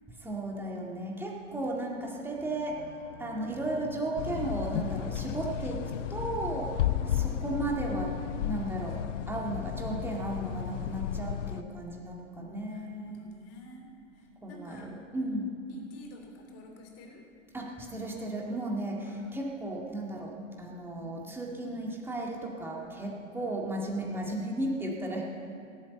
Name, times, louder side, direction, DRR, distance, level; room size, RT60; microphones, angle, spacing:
voice 1, 0.2-2.8 3.2-5.8 6.1-6.8 7.4-8.2 8.4-13.3 14.4-15.5 17.5-25.2, right 1 dB, 5° right, -2 dB, 2.0 m, -35 dB
sound 1, 2.2-13.5, right 4 dB, 65° right, 1.5 m, -51 dB
sound 2, 4.2-11.6, left 12 dB, 70° left, 0.5 m, -33 dB
voice 2, 6.8-7.3 12.4-14.9 15.7-17.2 19.0-19.3 21.0-21.2 23.4-23.6, equal, 35° left, 1 dB, 3.3 m, -50 dB
17.0 x 8.3 x 7.2 m, 2.4 s
hypercardioid pair, 115°, 39 cm